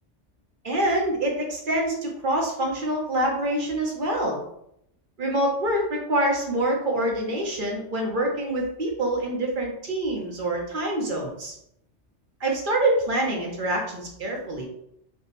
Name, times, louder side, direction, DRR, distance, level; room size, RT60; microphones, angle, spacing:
voice 1, 0.6-4.4 5.2-11.5 12.4-14.7, right 1 dB, 45° right, 0 dB, 1.0 m, -26 dB
3.7 x 2.3 x 4.0 m, 0.75 s
omnidirectional pair, 1.2 m